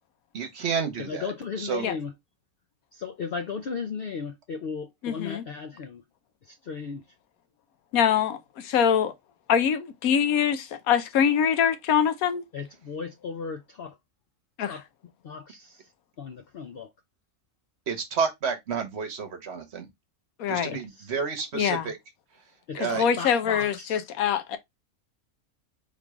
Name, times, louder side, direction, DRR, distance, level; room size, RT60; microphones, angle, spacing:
voice 1, 0.3-1.3 1.6-1.9 17.9-19.9 20.5-22.0 22.8-23.0, right 6 dB, 55° right, 1.1 m, -30 dB
voice 2, 1.0-2.1 2.9-6.0 6.4-7.0 12.5-14.0 14.6-14.8 15.2-15.9 16.2-16.9 20.7-21.1 22.7-24.0, left 5 dB, 65° left, 0.6 m, -36 dB
voice 3, 5.0-5.4 7.9-9.1 9.5-12.4 14.6-14.8 20.4-20.7 21.5-21.9 22.7-24.6, left 8 dB, 85° left, 1.1 m, -24 dB
3.6 x 3.2 x 3.5 m
omnidirectional pair, 1.5 m